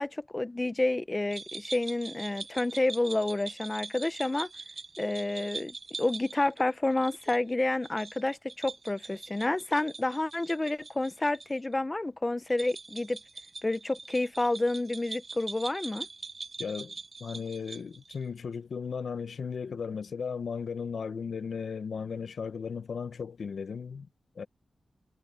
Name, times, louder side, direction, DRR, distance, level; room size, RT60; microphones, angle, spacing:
voice 1, 0.0-4.5 5.0-13.2 13.6-16.1, left 2 dB, 25° left, 0.9 m, -29 dB
sound 1, 1.3-11.5 11.7-11.8 12.5-18.2, right 4 dB, 50° right, 6.8 m, -43 dB
voice 2, 16.6-24.1 24.4-24.5, left 6 dB, 85° left, 0.8 m, -36 dB
wide cardioid pair, 95°, 0 cm